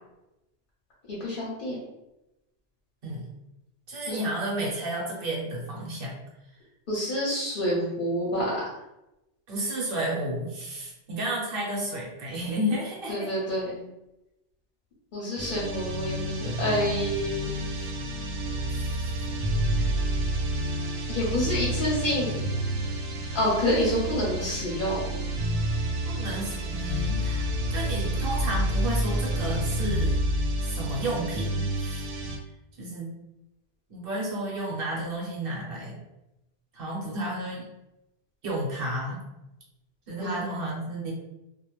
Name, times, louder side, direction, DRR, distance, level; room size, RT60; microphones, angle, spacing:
voice 1, 1.1-1.8 4.1-4.2 6.9-8.5 13.1-13.8 15.1-17.5 17.8-17.9 21.1-22.4 23.3-25.0 40.2-40.4, equal, 50° left, -7 dB, 0.8 m, -28 dB
voice 2, 3.9-6.1 9.5-13.3 18.7-19.2 19.8-19.9 26.0-30.2 30.6-32.1 32.8-33.1 33.9-36.0 36.7-37.7 38.4-39.2 40.1-41.1, right 1 dB, 55° right, -3 dB, 0.9 m, -32 dB
sound 1, 15.4-32.4, right 1 dB, 85° right, 0.9 m, -29 dB
2.4 x 2.0 x 3.0 m, 0.93 s
omnidirectional pair, 1.2 m